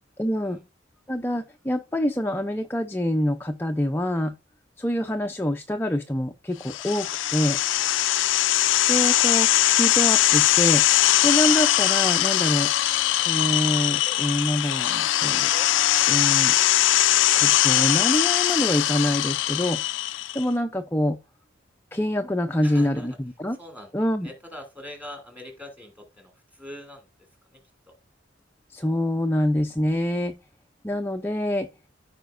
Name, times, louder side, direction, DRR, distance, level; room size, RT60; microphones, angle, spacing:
voice 1, 0.2-0.6 1.1-4.3 4.8-7.6 8.9-10.8 11.2-12.7 13.2-15.7 16.1-16.5 17.4-19.8 20.3-21.2 21.9-23.1 23.4-23.6 23.9-24.3 28.7-30.3 30.8-31.7, left 1 dB, 10° left, 0.5 m, -25 dB
sound 1, 6.7-20.4, left 14 dB, 70° left, 0.4 m, -21 dB
voice 2, 22.6-23.2 23.5-23.9 24.2-27.9, left 1 dB, 10° right, 2.5 m, -43 dB
14.0 x 5.0 x 2.5 m
head